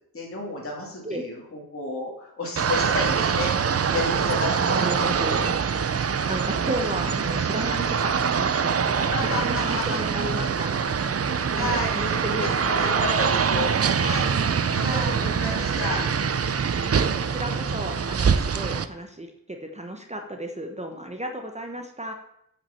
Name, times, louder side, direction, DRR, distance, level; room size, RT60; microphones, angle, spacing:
voice 1, 0.1-5.1 9.0-10.0 11.3-14.3 14.7-16.0, left 2 dB, 35° left, -2 dB, 2.6 m, -32 dB
sound 1, 2.6-18.9, right 6 dB, 40° right, 0.5 m, -24 dB
voice 2, 4.6-5.5 6.3-9.1 9.4-11.1 11.5-13.0 14.8-15.2 16.8-16.9 17.2-22.1, right 1 dB, 20° right, 4 dB, 1.1 m, -34 dB
8.5 x 6.1 x 7.0 m, 0.76 s
wide cardioid pair, 120°, 36 cm